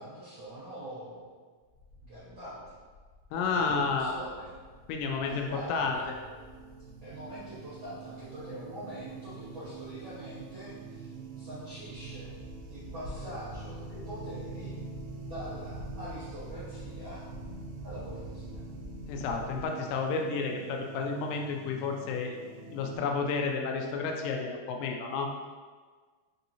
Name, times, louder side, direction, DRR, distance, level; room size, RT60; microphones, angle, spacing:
voice 1, 0.0-1.3 2.0-2.7 3.5-4.6 5.2-6.1 7.0-12.3 12.7-14.7 15.2-17.2 17.8-18.6, right 1 dB, 70° right, -11 dB, 1.1 m, -44 dB
sound 1, 1.7-19.6, left 2 dB, 50° left, 1.4 m, -48 dB
voice 2, 3.3-4.1 4.9-6.2 19.1-22.4 22.7-25.3, left 4 dB, 85° left, 2 dB, 2.1 m, -31 dB
sound 2, 4.4-23.0, right 4 dB, 90° right, 2.2 m, -45 dB
5.3 x 2.6 x 2.8 m, 1.5 s
omnidirectional pair, 3.7 m